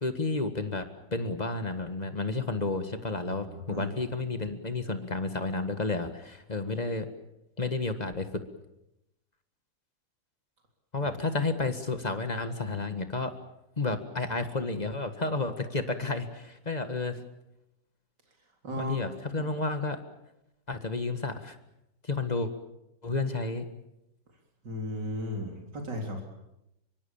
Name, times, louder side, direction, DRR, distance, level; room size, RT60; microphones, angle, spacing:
voice 1, 0.0-7.1 7.6-8.4 10.9-13.3 13.8-17.2 18.8-20.0 20.7-21.6 22.0-22.5 23.0-23.6, left 3 dB, 25° left, 9 dB, 1.7 m, -31 dB
voice 2, 3.2-3.9 11.0-11.1 18.6-19.0 19.3-19.5 24.6-26.2, left 1 dB, 70° right, 2 dB, 4.2 m, -35 dB
25.0 x 24.0 x 7.2 m, 0.87 s
omnidirectional pair, 1.9 m